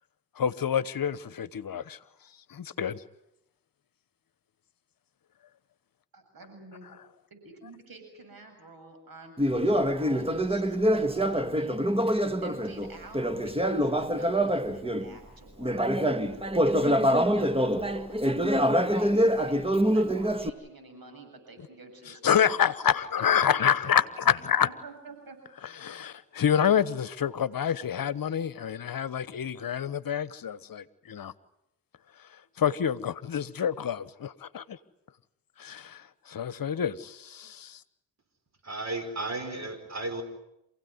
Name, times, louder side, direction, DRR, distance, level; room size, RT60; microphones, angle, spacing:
voice 1, 0.4-2.0 2.5-3.0 22.2-24.7 25.8-31.3 32.6-34.8 35.6-37.8, left 8 dB, 55° left, 17 dB, 1.2 m, -27 dB
voice 2, 6.1-7.0 7.3-11.8 12.4-15.9 16.3-16.4 16.7-22.6 23.2-24.0 24.6-25.4, right 3 dB, 55° right, 6 dB, 7.7 m, -48 dB
Conversation, 9.4-15.1 15.6-20.5, equal, 15° right, 2.0 m, -25 dB
voice 3, 38.6-40.2, right 2 dB, 40° right, 8 dB, 5.1 m, -34 dB
27.5 x 17.0 x 9.6 m, 0.84 s
hypercardioid pair, 45°, 42 cm